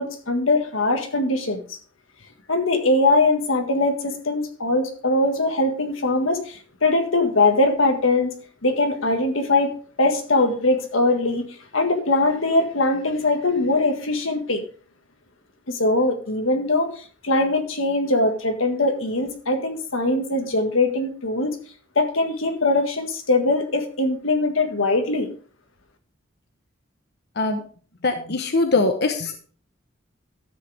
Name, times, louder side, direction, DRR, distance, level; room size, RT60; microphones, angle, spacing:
voice 1, 0.0-1.6 2.5-8.3 8.6-9.7 10.0-11.5 11.7-14.6 15.7-21.5 22.0-25.3, left 2 dB, 90° left, 5 dB, 1.7 m, -21 dB
voice 2, 28.0-29.5, left 3 dB, 55° left, 5 dB, 1.0 m, -22 dB
12.5 x 7.7 x 3.5 m, 0.41 s
head